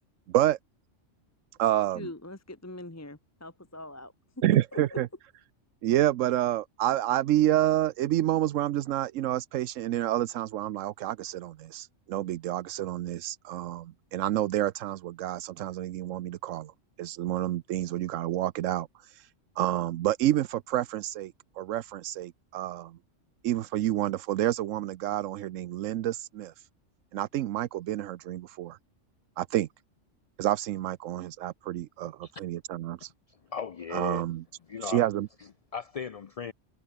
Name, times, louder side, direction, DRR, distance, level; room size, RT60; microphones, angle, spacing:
voice 1, 0.3-0.6 1.6-2.1 4.4-5.1 5.8-16.7 17.0-19.3 19.6-23.0 23.4-26.7 27.1-28.8 29.4-29.7 30.4-33.1 33.9-34.4 34.8-35.3, right 13 dB, 85° right, 1.0 m, -29 dB
voice 2, 1.9-4.1 4.7-5.0, left 1 dB, 15° left, 1.2 m, -42 dB
voice 3, 33.5-34.2 34.7-35.0 35.4-36.5, left 6 dB, 45° left, 0.4 m, -37 dB
omnidirectional pair, 1.3 m